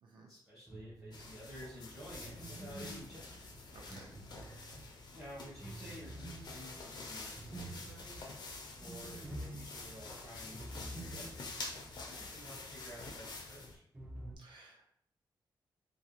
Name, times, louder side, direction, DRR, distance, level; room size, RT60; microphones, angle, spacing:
voice 1, 0.3-3.4 5.1-8.2 8.7-11.4 12.1-13.8, equal, 25° right, -7 dB, 0.8 m, -52 dB
sound 1, 0.7-1.4 2.2-4.9 5.6-11.8 12.1-12.2 13.9-14.3, right 1 dB, 10° right, 0.3 m, -48 dB
sound 2, 1.1-13.8, left 3 dB, 55° left, 0.4 m, -48 dB
voice 2, 3.7-4.1 14.4-14.9, right 3 dB, 70° right, 0 dB, 0.6 m, -57 dB
2.5 x 2.1 x 2.8 m, 0.65 s
wide cardioid pair, 145°, 9 cm